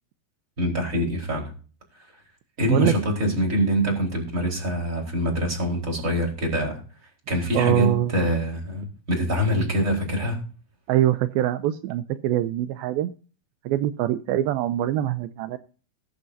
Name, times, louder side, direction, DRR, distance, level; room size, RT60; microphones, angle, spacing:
voice 1, 0.6-1.5 2.6-6.8 7.3-10.4, equal, 20° right, 0 dB, 4.4 m, -24 dB
voice 2, 7.5-8.1 10.9-13.1 13.7-15.6, right 12 dB, 85° right, 10 dB, 2.4 m, -23 dB
21.0 x 7.3 x 2.7 m, 0.38 s
omnidirectional pair, 4.4 m